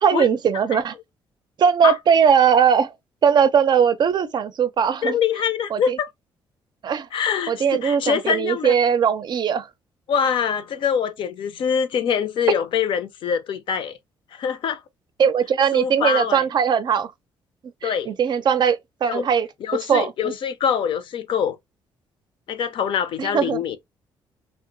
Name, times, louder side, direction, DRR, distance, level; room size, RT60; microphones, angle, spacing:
voice 1, 0.0-0.9 1.6-2.9 3.2-5.2 5.7-6.0 6.8-7.1 7.5-9.7 15.2-17.1 17.8-19.5 19.9-20.3 23.2-23.6, right 7 dB, 50° right, 0.4 m, -19 dB
voice 2, 5.0-6.1 7.1-8.8 10.1-14.0 14.3-14.8 15.7-16.4 17.8-18.1 19.0-19.3 19.6-21.6 22.5-23.8, left 7 dB, 65° left, 0.5 m, -24 dB
2.8 x 2.1 x 2.5 m
supercardioid pair, 70°, 9 cm